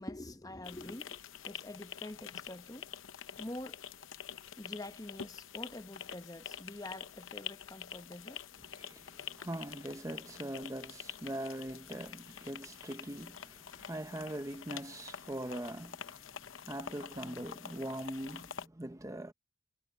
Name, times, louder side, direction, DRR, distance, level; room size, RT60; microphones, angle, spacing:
voice 1, 0.0-2.9 3.4-3.8 4.6-8.4, left 1 dB, 20° left, 1.0 m, -46 dB
sound 1, 0.6-18.7, left 8 dB, 85° left, 0.8 m, -47 dB
voice 2, 8.6-19.3, right 1 dB, 15° right, 0.9 m, -42 dB
head